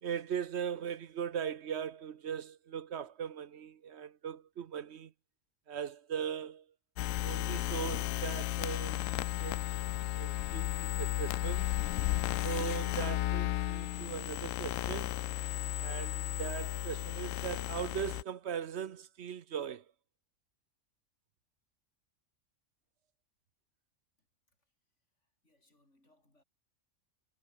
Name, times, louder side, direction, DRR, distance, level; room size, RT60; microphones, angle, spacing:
voice 1, 0.0-5.1 5.7-6.6 7.2-9.0 9.4-9.7 10.1-11.7 12.4-15.2 15.8-19.8, right 8 dB, 60° right, 1.0 m, -39 dB
sound 1, 7.0-18.2, left 14 dB, 85° left, 1.0 m, -34 dB
voice 2, 24.2-24.7 25.2-26.4, left 1 dB, 65° left, 8.0 m, -72 dB
omnidirectional pair, 1.3 m